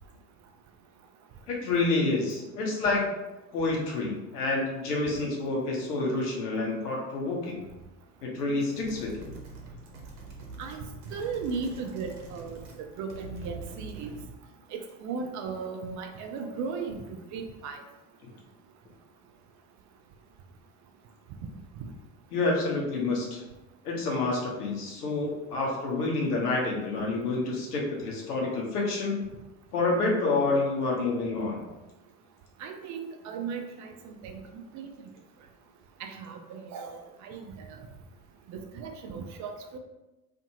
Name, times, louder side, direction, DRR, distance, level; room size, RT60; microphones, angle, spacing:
voice 1, 1.5-3.0 3.5-7.6 8.2-9.3 18.2-18.3 22.3-23.4 23.8-29.2 29.7-31.6, left 3 dB, 80° left, -1 dB, 0.9 m, -28 dB
sound 1, 8.6-12.8 13.1-14.4, right 3 dB, 75° right, 0.8 m, -45 dB
voice 2, 10.6-14.1 14.7-17.0 17.3-17.8 32.6-34.9 36.0-37.7 38.5-39.8, right 5 dB, 40° right, 4 dB, 0.4 m, -37 dB
2.7 x 2.5 x 2.7 m, 1.0 s
hypercardioid pair, 70°, 46 cm